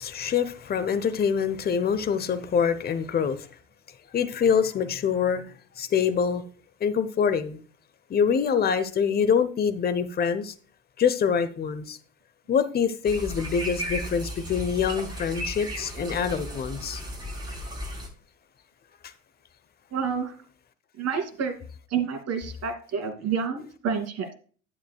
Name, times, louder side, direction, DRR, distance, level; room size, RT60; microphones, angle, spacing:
voice 1, 0.0-3.5 4.1-5.4 5.8-6.4 6.8-7.6 8.1-10.5 11.0-12.0 12.5-17.0, left 7 dB, 25° left, 0.9 m, -25 dB
sound 1, 13.1-18.1, equal, 10° right, 4.3 m, -35 dB
voice 2, 19.9-20.3 21.0-21.6 21.9-24.3, right 6 dB, 40° right, 2.6 m, -29 dB
11.0 x 8.6 x 2.3 m
figure-of-eight pair, 70°, 39 cm